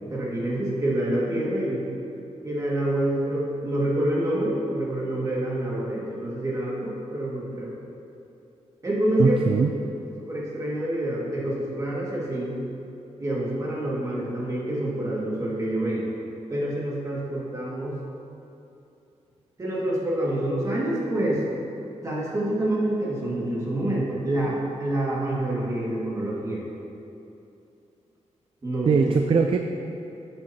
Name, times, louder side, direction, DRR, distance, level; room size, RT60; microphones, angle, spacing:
voice 1, 0.0-1.8 2.4-7.7 8.8-9.6 10.3-12.6 13.2-16.1 16.5-18.0 19.6-21.4 22.0-26.6 28.6-29.1, right 1 dB, 25° right, -6 dB, 2.0 m, -27 dB
voice 2, 9.2-9.7 28.9-29.6, right 5 dB, 45° right, 5 dB, 0.4 m, -20 dB
12.5 x 7.8 x 2.8 m, 2.8 s
wide cardioid pair, 140°, 12 cm